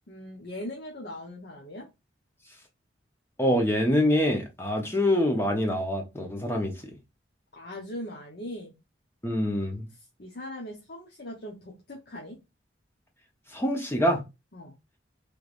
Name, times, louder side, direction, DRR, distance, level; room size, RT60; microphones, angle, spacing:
voice 1, 0.1-1.9 7.5-8.7 10.2-12.4 14.5-14.8, left 1 dB, 55° left, 0.9 m, -40 dB
voice 2, 3.4-6.9 9.2-9.9 13.5-14.2, left 1 dB, 10° left, 0.8 m, -25 dB
3.3 x 3.3 x 2.5 m
head